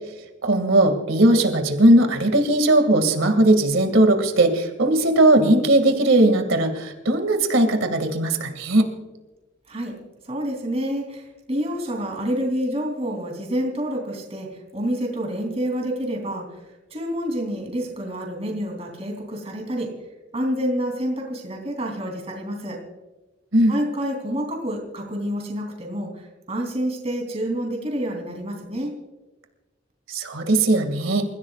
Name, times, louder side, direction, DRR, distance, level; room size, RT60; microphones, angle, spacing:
voice 1, 0.4-8.9 23.5-23.7 30.1-31.2, right 1 dB, 80° right, 6 dB, 2.2 m, -18 dB
voice 2, 10.2-14.5 14.7-16.6 16.9-19.9 20.3-22.8 23.7-28.9, equal, 30° right, 1 dB, 3.2 m, -28 dB
29.0 x 15.5 x 2.4 m, 1.1 s
head